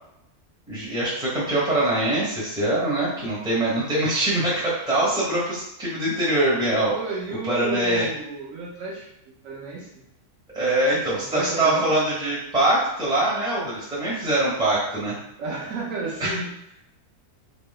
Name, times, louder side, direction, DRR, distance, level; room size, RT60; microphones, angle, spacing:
voice 1, 0.7-6.9 7.5-8.1 10.5-15.2 16.2-16.3, right 1 dB, 5° right, -7 dB, 1.2 m, -23 dB
voice 2, 6.9-9.1 9.4-10.0 11.2-11.9 15.4-16.5, right 3 dB, 65° right, -3 dB, 1.1 m, -32 dB
3.1 x 3.0 x 2.3 m, 0.82 s
omnidirectional pair, 1.6 m